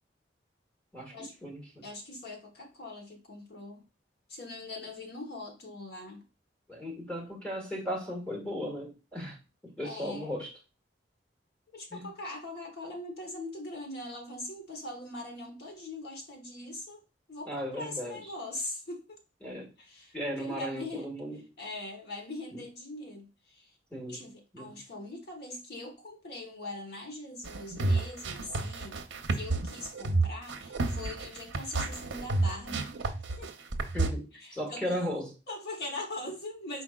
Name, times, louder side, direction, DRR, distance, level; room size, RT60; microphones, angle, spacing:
voice 1, 0.9-1.9 6.7-10.6 11.9-12.1 17.5-18.3 19.4-19.7 20.1-21.4 22.5-22.6 23.9-24.2 24.5-24.8 33.9-35.3, equal, 5° left, 1.6 m, -36 dB
voice 2, 1.8-3.8 4.3-6.2 9.8-10.4 11.7-19.2 19.8-21.1 21.6-23.8 24.1-29.0 29.3-33.1 33.4-33.5 34.4-34.9 35.5-36.8, left 2 dB, 55° left, 1.3 m, -41 dB
sound 1, 27.4-34.1, right 2 dB, 85° right, 0.7 m, -30 dB
4.8 x 4.4 x 2.3 m
head